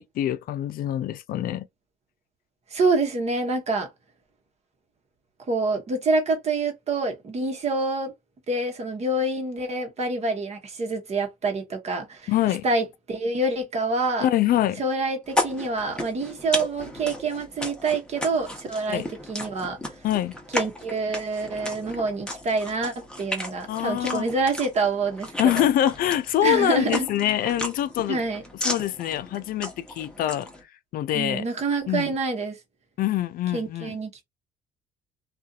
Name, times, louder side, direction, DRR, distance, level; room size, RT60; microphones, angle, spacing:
voice 1, 0.0-1.7 12.3-12.6 14.2-14.8 18.9-19.1 20.0-20.3 23.7-24.3 25.4-28.2 28.6-30.5 30.9-31.5 31.9-32.1 33.0-34.0, left 12 dB, 60° left, 0.4 m, -24 dB
voice 2, 2.7-3.9 5.5-8.1 8.5-12.3 12.6-14.3 14.8-19.8 20.5-25.3 26.4-27.1 28.1-28.4 31.1-32.6 33.5-34.2, right 3 dB, 40° right, 1.1 m, -26 dB
sound 1, 15.3-30.6, left 1 dB, 5° left, 0.9 m, -34 dB
2.6 x 2.4 x 2.4 m
cardioid pair, 110°, 17 cm